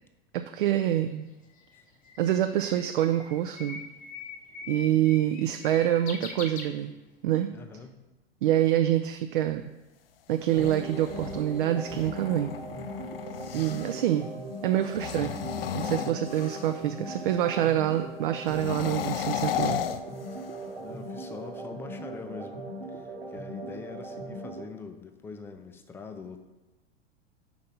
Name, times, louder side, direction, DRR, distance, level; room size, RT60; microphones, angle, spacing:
voice 1, 0.3-1.2 2.2-3.8 4.7-6.9 7.2-7.5 8.4-9.7 10.3-12.6 13.5-14.3 14.6-19.8, right 12 dB, 55° right, 7 dB, 0.4 m, -26 dB
Bird, 1.1-7.3, left 4 dB, 25° left, 0.8 m, -42 dB
voice 2, 7.5-8.0 20.8-22.6 22.9-26.4, left 5 dB, 10° left, 7 dB, 0.4 m, -43 dB
sound 1, 10.3-14.1 14.8-16.9 18.4-20.7, left 10 dB, 65° left, 0.5 m, -34 dB
sound 2, 10.5-24.6, right 1 dB, 80° right, 1.1 m, -40 dB
5.1 x 4.5 x 5.4 m, 1.1 s
figure-of-eight pair, 90°, 32 cm